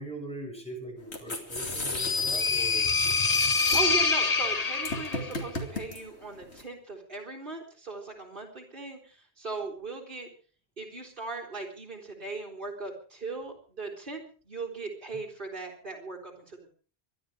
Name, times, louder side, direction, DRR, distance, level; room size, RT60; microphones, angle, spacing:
voice 1, 0.0-2.9, right 2 dB, 5° left, 0 dB, 7.8 m, -41 dB
sound 1, 1.0-6.6, left 2 dB, 85° left, 3.1 m, -36 dB
sound 2, 1.6-5.3, left 4 dB, 40° left, 1.1 m, -26 dB
voice 2, 3.7-10.3 10.8-16.7, right 3 dB, 50° right, -1 dB, 3.8 m, -38 dB
25.0 x 11.5 x 4.9 m, 0.41 s
omnidirectional pair, 1.1 m